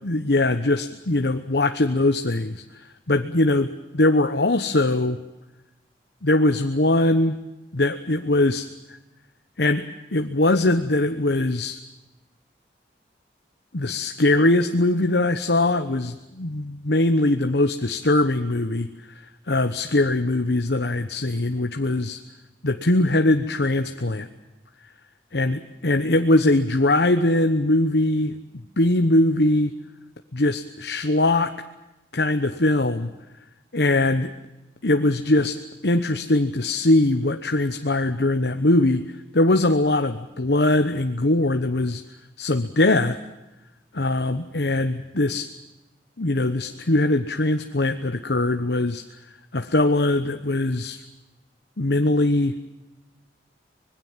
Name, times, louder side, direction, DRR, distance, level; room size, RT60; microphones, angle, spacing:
voice 1, 0.0-5.2 6.2-7.4 7.7-9.0 9.6-9.9 10.1-11.8 13.7-18.9 19.2-22.2 22.6-24.3 25.3-28.3 28.8-29.7 30.3-31.5 32.1-33.1 33.7-34.3 34.8-39.0 39.3-42.0 42.4-43.2 43.9-45.5 46.2-49.0 49.5-51.0 51.8-52.5, left 2 dB, 75° left, 7 dB, 1.1 m, -21 dB
25.0 x 21.0 x 7.4 m, 1.0 s
head